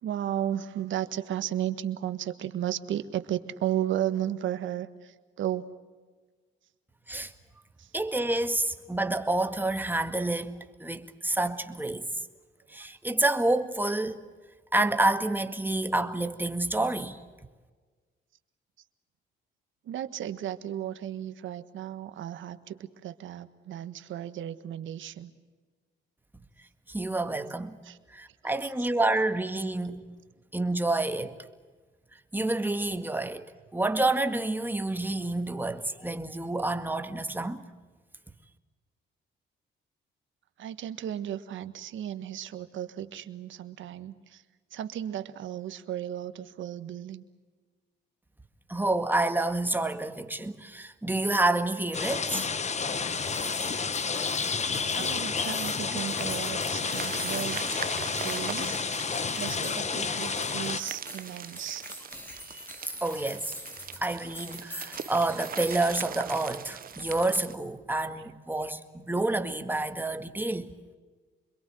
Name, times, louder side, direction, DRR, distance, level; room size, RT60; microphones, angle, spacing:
voice 1, 0.0-5.6 7.8-7.9 19.8-25.3 27.8-28.0 28.4-28.7 40.6-44.4 44.7-47.2 54.9-58.8 59.3-61.9, right 11 dB, 75° right, 1.5 m, -34 dB
voice 2, 7.9-10.5 10.8-12.1 12.7-14.2 14.7-17.2 26.9-27.8 28.1-30.0 30.5-31.4 32.3-37.6 48.7-52.5 62.5-62.6 63.0-63.5 64.0-70.7, right 2 dB, 10° right, 1.9 m, -28 dB
sound 1, 51.9-60.8, left 5 dB, 35° left, 1.2 m, -30 dB
sound 2, 51.9-65.9, equal, 10° left, 3.0 m, -44 dB
sound 3, 56.1-67.5, right 8 dB, 45° right, 0.8 m, -41 dB
26.5 x 22.0 x 7.8 m
cardioid pair, 90°, 20 cm